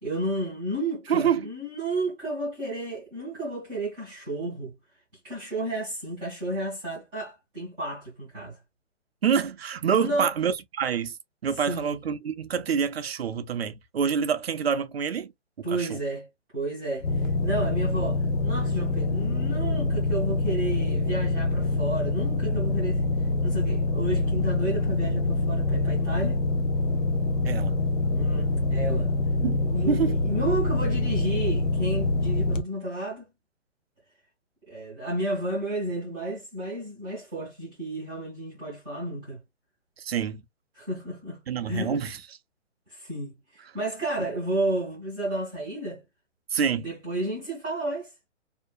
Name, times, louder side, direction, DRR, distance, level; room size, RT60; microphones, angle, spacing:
voice 1, 0.0-4.7 5.2-8.6 9.9-10.3 11.6-12.0 15.6-16.3 16.5-23.0 23.4-26.4 28.1-29.1 29.7-33.3 34.7-39.4 40.7-42.0 42.9-46.0 46.7-48.1, right 1 dB, 5° right, 0.6 m, -32 dB
voice 2, 1.1-1.5 9.2-11.2 11.4-15.3 15.6-16.0 27.4-27.8 29.4-30.2 40.0-40.4 41.5-42.2 46.5-46.9, right 7 dB, 55° right, 0.5 m, -27 dB
sound 1, 17.0-32.6, left 2 dB, 85° left, 0.6 m, -25 dB
2.5 x 2.2 x 2.3 m
hypercardioid pair, 165°, 37 cm